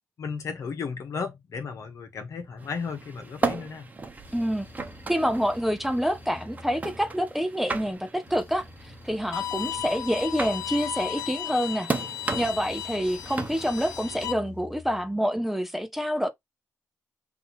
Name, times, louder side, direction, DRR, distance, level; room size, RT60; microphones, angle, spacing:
voice 1, 0.2-3.9, left 5 dB, 65° left, 1.3 m, -34 dB
sound 1, 2.6-14.3, right 3 dB, 25° right, 1.0 m, -36 dB
sound 2, 4.2-7.5 8.3-11.5 12.2-15.2, left 2 dB, 45° left, 1.5 m, -48 dB
voice 2, 4.3-4.7 5.1-11.9 12.3-16.3, equal, 5° right, 0.6 m, -27 dB
Bowed string instrument, 9.3-14.3, left 12 dB, 80° left, 0.4 m, -35 dB
3.7 x 2.8 x 4.3 m
cardioid pair, 90°, 6 cm